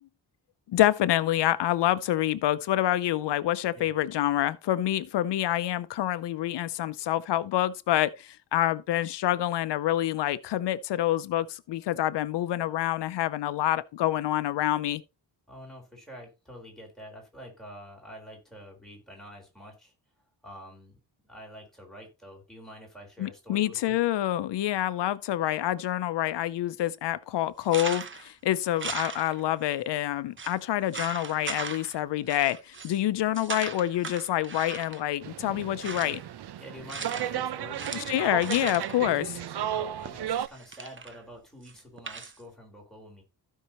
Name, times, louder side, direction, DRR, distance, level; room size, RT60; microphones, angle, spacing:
voice 1, 0.7-15.0 23.2-36.2 37.9-39.4, left 13 dB, 85° left, 0.6 m, -27 dB
voice 2, 15.5-19.9 20.4-21.0 21.2-23.9 36.6-38.1 39.3-43.2, equal, ahead, 4.3 m, -47 dB
sound 1, 27.6-28.3 28.8-29.7 29.9-30.0 30.4-30.6 30.9-32.0 32.3-33.0 33.3-35.0 35.6-36.3 36.9-37.4 37.7-39.0 40.0-41.2 41.6-42.4, right 5 dB, 30° right, 0.8 m, -38 dB
sound 2, 35.2-40.5, right 10 dB, 70° right, 0.7 m, -34 dB
15.5 x 5.5 x 3.0 m
wide cardioid pair, 145°, 41 cm